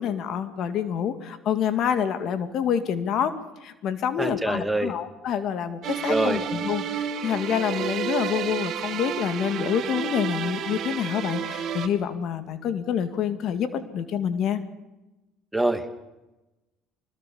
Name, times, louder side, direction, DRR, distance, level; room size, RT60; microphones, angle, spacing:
voice 1, 0.0-3.3 3.6-14.6, left 8 dB, 60° left, 10 dB, 2.1 m, -27 dB
voice 2, 4.2-4.9 6.1-6.4 15.5-15.9, right 1 dB, 5° right, 8 dB, 2.1 m, -25 dB
sound 1, 5.8-11.9, right 8 dB, 55° right, 2.7 m, -31 dB
24.0 x 21.0 x 7.1 m, 1.0 s
supercardioid pair, 80°, 0 cm